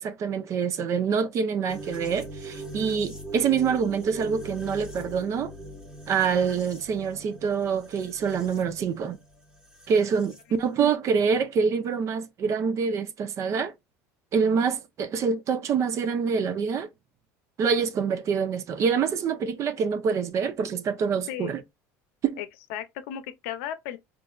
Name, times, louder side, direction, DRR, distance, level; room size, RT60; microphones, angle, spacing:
voice 1, 0.0-5.5 6.1-9.2 9.9-13.7 14.3-16.9 17.6-21.6 22.2-22.4, right 6 dB, 45° right, 0.6 m, -26 dB
sound 1, 1.7-10.4, right 2 dB, 10° right, 0.9 m, -41 dB
voice 2, 22.4-24.0, left 10 dB, 80° left, 0.6 m, -35 dB
4.0 x 2.5 x 2.3 m
supercardioid pair, 110°, 7 cm